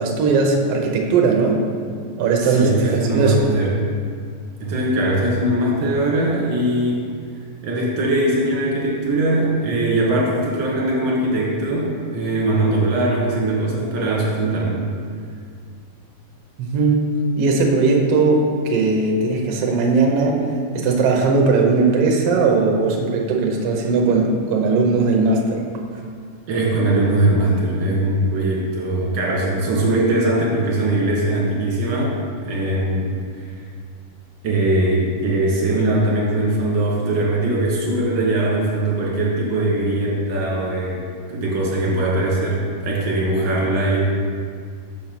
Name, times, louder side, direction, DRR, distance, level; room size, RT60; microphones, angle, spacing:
voice 1, 0.0-1.6 2.2-3.4 16.6-17.1 17.4-20.3 20.7-25.6, right 4 dB, 70° right, 0 dB, 1.4 m, -18 dB
voice 2, 2.4-3.8 4.6-7.1 7.6-14.8 26.5-33.5 34.4-41.0 41.3-44.0, right 1 dB, 50° right, -5 dB, 1.7 m, -21 dB
6.8 x 4.6 x 5.9 m, 2.1 s
omnidirectional pair, 3.8 m